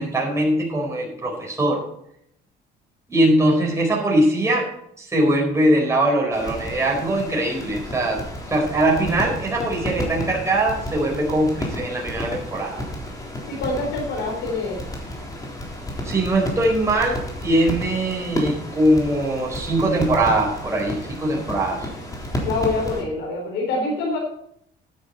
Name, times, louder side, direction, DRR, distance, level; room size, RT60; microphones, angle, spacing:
voice 1, 0.0-1.8 3.1-8.2 8.5-12.8 16.0-21.9, right 1 dB, 15° right, -1 dB, 4.2 m, -21 dB
sound 1, 6.3-23.0, left 1 dB, 20° left, 3.8 m, -32 dB
voice 2, 13.5-15.0 22.4-24.2, left 3 dB, 90° left, -2 dB, 4.1 m, -25 dB
12.0 x 10.0 x 4.2 m, 0.71 s
cardioid pair, 115°, 19 cm